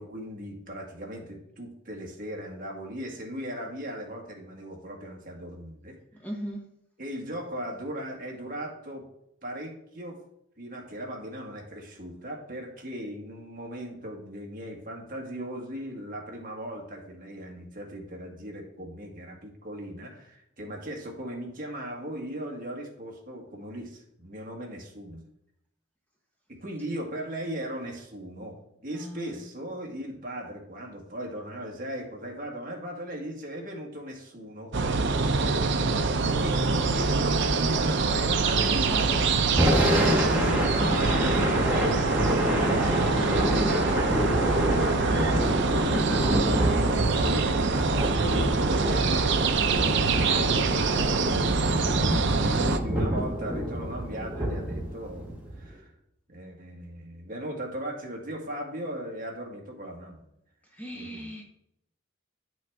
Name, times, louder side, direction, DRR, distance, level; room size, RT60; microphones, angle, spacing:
voice 1, 0.0-6.0 7.0-9.1 9.4-10.2 10.6-25.2 26.5-35.1 36.4-36.6 36.9-55.9 56.3-60.2 60.9-61.3, right 1 dB, 40° right, 0 dB, 1.8 m, -38 dB
voice 2, 6.2-6.6 28.9-29.4 38.6-39.2 60.7-61.4, equal, 10° left, 0 dB, 1.1 m, -38 dB
sound 1, 34.7-52.8, right 4 dB, 55° right, 0.6 m, -25 dB
Thunder / Rain, 39.4-55.7, equal, 10° right, 1.7 m, -27 dB
10.0 x 6.2 x 3.6 m, 0.78 s
head